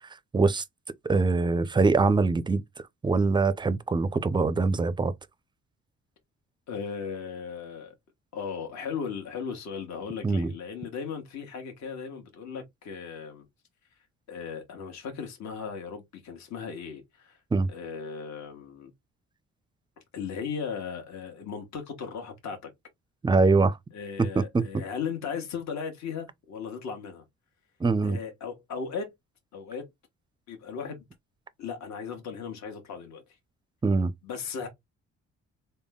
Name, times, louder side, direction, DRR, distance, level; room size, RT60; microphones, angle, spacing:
voice 1, 0.3-0.6 1.0-2.6 3.0-5.1 10.2-10.5 17.5-17.7 23.2-23.8 24.2-24.7 27.8-28.2 33.8-34.1, right 4 dB, 15° right, 0.4 m, -23 dB
voice 2, 6.7-7.9 8.3-13.4 14.3-17.4 17.7-18.9 20.1-22.7 23.9-27.2 28.0-29.1 29.5-29.8 30.5-31.0 31.6-33.2 34.2-34.7, left 6 dB, 65° left, 1.3 m, -37 dB
3.5 x 2.2 x 3.6 m
cardioid pair, 90°, 30 cm